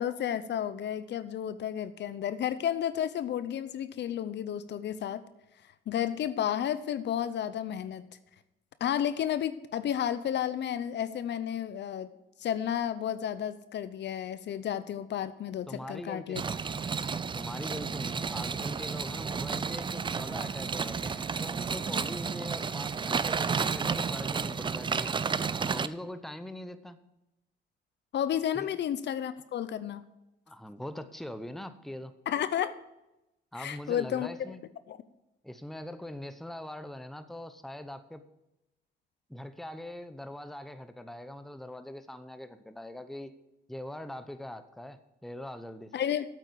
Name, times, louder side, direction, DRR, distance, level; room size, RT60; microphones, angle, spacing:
voice 1, 0.0-5.2 5.9-8.1 8.8-12.1 12.4-16.4 28.1-30.0 32.3-32.7 33.6-34.3 34.9-35.0 45.9-46.3, left 10 dB, 60° left, 14 dB, 0.7 m, -32 dB
voice 2, 15.7-16.6 17.3-25.3 25.7-27.0 28.5-28.7 30.5-32.1 33.5-34.6 35.4-38.2 39.3-43.3 43.7-45.9, left 1 dB, ahead, 10 dB, 0.8 m, -42 dB
sound 1, 16.3-25.9, right 5 dB, 25° right, 0.4 m, -32 dB
8.4 x 8.4 x 6.8 m, 0.93 s
cardioid pair, 90°, 20 cm